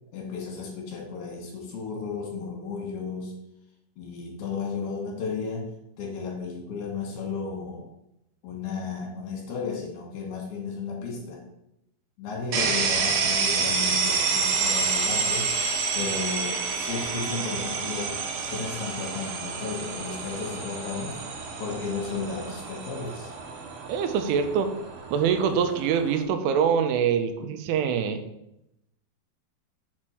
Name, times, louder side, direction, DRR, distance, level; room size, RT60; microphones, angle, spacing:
voice 1, 0.1-3.3 4.0-7.9 8.4-11.4 12.2-15.5 15.9-18.2 18.5-21.2 21.6-23.3, left 4 dB, 65° left, -2 dB, 3.0 m, -34 dB
sound 1, 12.5-26.2, right 5 dB, 70° right, 2.4 m, -29 dB
voice 2, 23.9-24.7 25.1-28.2, right 7 dB, 90° right, 7 dB, 3.2 m, -24 dB
7.2 x 4.4 x 6.3 m, 0.83 s
omnidirectional pair, 5.4 m